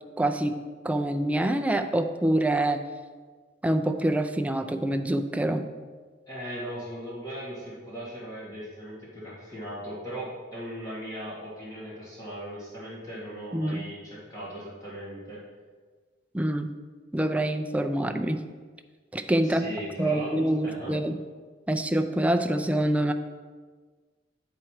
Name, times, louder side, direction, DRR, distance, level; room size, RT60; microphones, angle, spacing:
voice 1, 0.2-0.6 0.8-2.8 3.6-5.7 13.5-13.8 16.3-16.7 17.1-18.4 19.1-19.7 20.0-21.2 21.7-23.1, right 1 dB, 5° right, 6 dB, 0.4 m, -26 dB
voice 2, 6.3-15.4 19.4-20.3 20.6-20.9, equal, 20° left, -8 dB, 1.9 m, -38 dB
9.4 x 4.4 x 4.8 m, 1.5 s
head